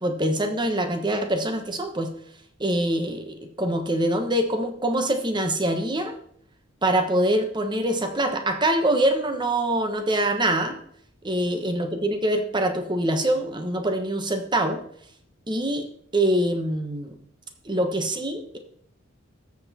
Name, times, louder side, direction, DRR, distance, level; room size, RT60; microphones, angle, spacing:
voice 1, 0.0-2.1 2.6-6.1 6.8-10.7 11.2-14.8 15.5-15.9 16.1-17.1 17.6-18.6, right 1 dB, 20° right, 6 dB, 1.1 m, -24 dB
13.0 x 7.1 x 4.3 m, 0.65 s
head